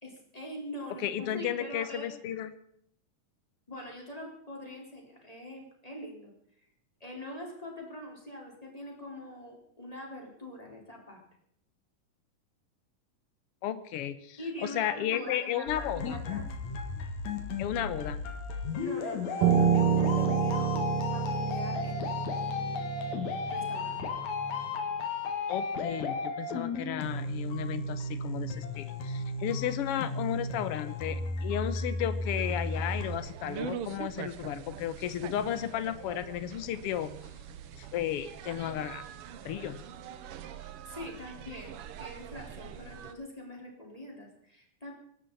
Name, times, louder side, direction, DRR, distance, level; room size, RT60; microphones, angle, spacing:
voice 1, 0.0-2.1 3.7-6.3 7.0-11.2 14.4-16.5 18.8-20.8 21.1-22.8 23.5-24.0 40.5-44.9, left 1 dB, 10° left, -1 dB, 4.0 m, -43 dB
voice 2, 1.0-2.6 13.6-16.2 17.6-18.2 25.5-37.1 37.8-39.0 39.4-39.8, left 10 dB, 80° left, 12 dB, 1.3 m, -34 dB
sound 1, 15.7-33.2, left 3 dB, 60° left, 2.9 m, -34 dB
Piano, 19.4-24.7, right 7 dB, 65° right, 1.5 m, -28 dB
sound 2, 32.3-43.1, right 9 dB, 85° right, 1.2 m, -44 dB
24.5 x 12.5 x 4.1 m, 0.71 s
omnidirectional pair, 3.9 m